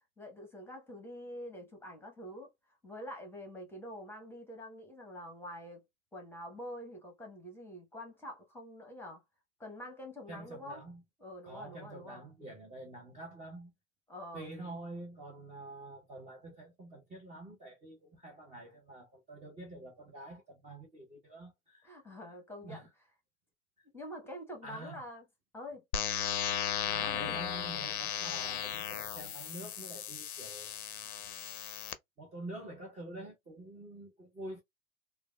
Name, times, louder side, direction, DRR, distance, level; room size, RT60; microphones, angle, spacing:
voice 1, 0.0-2.5 2.8-5.8 6.1-9.2 9.6-10.8 11.2-12.2 14.1-14.5 21.8-22.9 23.9-25.2 25.5-25.8 27.0-27.4, left 1 dB, 5° left, 1.0 m, -46 dB
voice 2, 10.3-11.0 11.4-13.7 14.3-21.9 22.6-22.9 24.6-25.0 26.8-31.1 32.2-34.6, right 2 dB, 15° right, 0.7 m, -47 dB
sound 1, 25.9-31.9, left 9 dB, 90° left, 0.5 m, -36 dB
3.3 x 2.2 x 2.2 m
hypercardioid pair, 100°, 43 cm